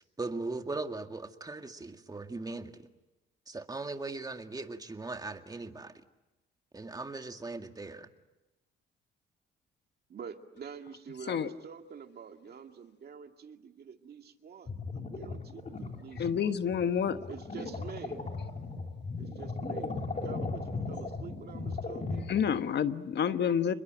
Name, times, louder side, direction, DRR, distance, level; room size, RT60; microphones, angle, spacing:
voice 1, 0.2-2.9 3.5-5.9 6.7-8.1, right 3 dB, 20° right, 6 dB, 2.0 m, -39 dB
voice 2, 10.1-16.6 17.3-18.3 19.2-22.3 23.2-23.7, right 6 dB, 55° right, 5 dB, 2.3 m, -47 dB
sound 1, 14.7-22.6, left 3 dB, 35° left, 3.4 m, -37 dB
voice 3, 16.2-17.2 22.3-23.7, left 8 dB, 60° left, 10 dB, 1.3 m, -28 dB
29.5 x 21.5 x 9.0 m, 1.0 s
cardioid pair, 90°, 20 cm